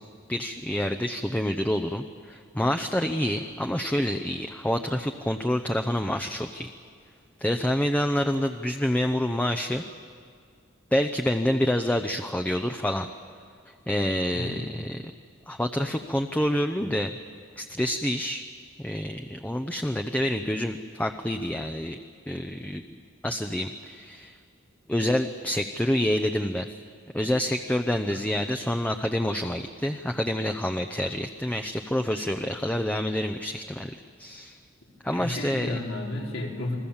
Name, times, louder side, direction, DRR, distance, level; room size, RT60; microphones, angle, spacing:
voice 1, 0.3-6.7 7.4-9.8 10.9-13.1 13.9-15.0 15.5-17.1 17.6-18.4 18.8-22.0 22.3-23.0 23.2-24.3 24.9-26.7 27.1-34.6 35.0-35.7, left 1 dB, 5° left, 5 dB, 0.7 m, -27 dB
voice 2, 14.3-14.7 28.1-28.2 35.0-36.8, left 2 dB, 85° left, -2 dB, 4.7 m, -33 dB
29.0 x 21.0 x 7.2 m, 2.2 s
head